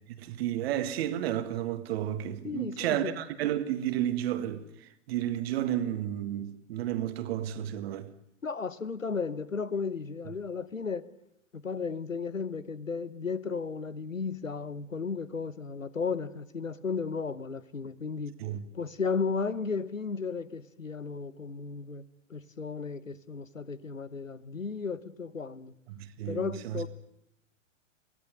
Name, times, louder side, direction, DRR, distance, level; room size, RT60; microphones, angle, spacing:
voice 1, 0.1-8.1 18.4-18.6 25.9-26.9, right 11 dB, 50° right, 1.9 m, -32 dB
voice 2, 2.4-3.1 8.4-11.1 11.5-18.3 18.7-25.7 26.3-26.9, left 5 dB, 90° left, 1.0 m, -34 dB
23.0 x 17.0 x 9.0 m
figure-of-eight pair, 100°, 38 cm